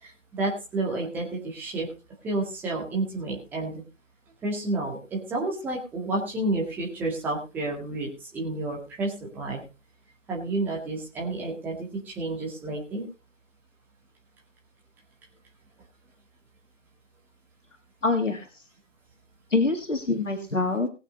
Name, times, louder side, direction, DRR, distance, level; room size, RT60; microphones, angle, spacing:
voice 1, 0.0-1.9 2.2-3.8 4.4-9.6 10.3-11.8 12.1-13.0, right 2 dB, 5° right, -3 dB, 2.0 m, -30 dB
voice 2, 18.0-18.6 19.5-20.9, left 3 dB, 80° left, 7 dB, 1.9 m, -25 dB
18.5 x 8.2 x 3.9 m, 0.31 s
figure-of-eight pair, 145°, 37 cm